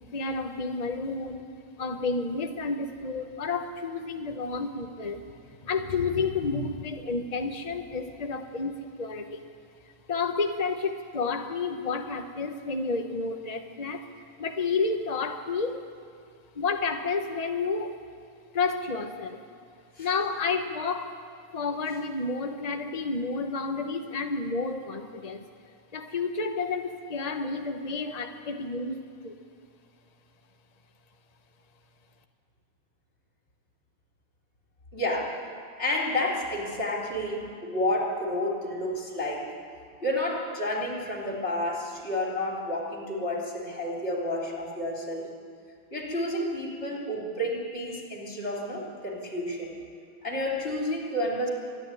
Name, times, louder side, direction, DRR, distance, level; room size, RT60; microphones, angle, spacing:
voice 1, 0.1-1.5 1.8-5.2 5.6-9.5 10.1-14.1 14.4-15.8 16.5-17.9 18.5-19.4 20.0-21.2 21.5-25.4 25.9-29.3, left 4 dB, 60° left, 6 dB, 0.4 m, -30 dB
voice 2, 34.9-35.4 35.8-39.5 40.0-45.3 45.9-49.7 50.2-51.5, left 1 dB, 30° left, -2 dB, 3.8 m, -30 dB
25.0 x 10.5 x 9.8 m, 2.2 s
omnidirectional pair, 2.4 m